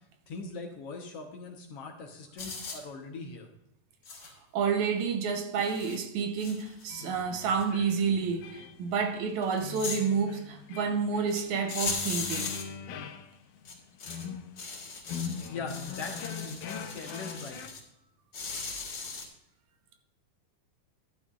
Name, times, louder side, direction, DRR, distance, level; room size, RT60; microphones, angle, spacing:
voice 1, 0.3-3.5 5.4-5.5 15.5-17.7, left 4 dB, 60° left, 1.9 m, -41 dB
sound 1, 2.4-2.8 4.1-4.3 5.0-5.1 5.6-6.0 6.4-7.2 7.5-7.6 8.0-8.1 9.4-10.0 11.3-11.4 11.7-12.6 13.7-14.3 14.6-17.8 18.3-19.3, left 4 dB, 40° left, 2.4 m, -38 dB
voice 2, 4.5-12.6, right 6 dB, 75° right, 2.4 m, -29 dB
sound 2, 6.9-17.7, left 7 dB, 85° left, 2.3 m, -42 dB
13.5 x 11.0 x 2.5 m
omnidirectional pair, 3.4 m